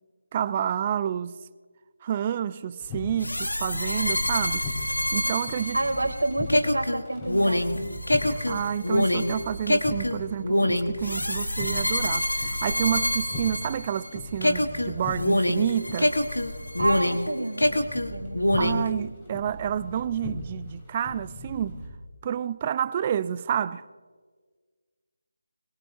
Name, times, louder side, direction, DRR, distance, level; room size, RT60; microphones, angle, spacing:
voice 1, 0.3-1.4 2.0-4.6 5.1-5.8 8.3-16.1 18.6-21.8 22.2-23.8, right 9 dB, 25° right, 0.4 m, -29 dB
sound 1, 2.8-21.9, left 2 dB, 20° left, 3.4 m, -39 dB
sound 2, 3.2-14.1 14.4-17.3 17.6-18.9, left 1 dB, 85° left, 1.2 m, -25 dB
voice 2, 5.7-7.9 16.8-18.4, right 2 dB, 80° right, 2.5 m, -29 dB
22.0 x 20.5 x 2.6 m
figure-of-eight pair, 160°, 0 cm